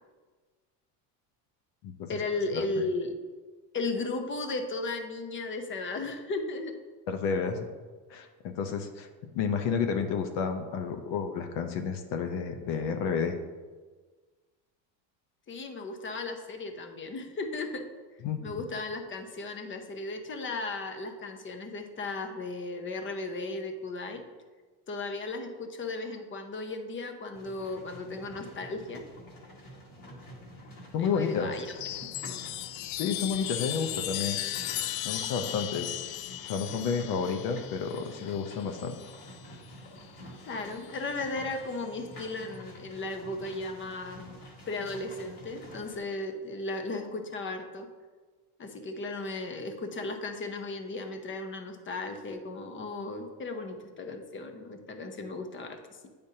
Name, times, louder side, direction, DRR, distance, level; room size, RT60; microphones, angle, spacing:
voice 1, 2.1-3.1 3.7-6.7 15.5-17.8 18.4-24.2 24.9-29.0 31.0-31.7 40.5-44.2 44.7-47.9 48.6-56.1, left 2 dB, 25° left, 6 dB, 0.8 m, -35 dB
voice 2, 7.1-7.7 8.1-9.1 9.3-13.4 18.2-18.4 30.9-31.5 32.9-34.4 35.0-35.9 36.4-38.9, left 6 dB, 65° left, 6 dB, 0.8 m, -31 dB
sound 1, 27.3-46.0, equal, 45° left, 1.9 m, -48 dB
Chime, 31.6-39.4 40.6-41.2, left 13 dB, 85° left, 0.5 m, -37 dB
8.6 x 5.1 x 2.8 m, 1.4 s
supercardioid pair, 105°, 46 cm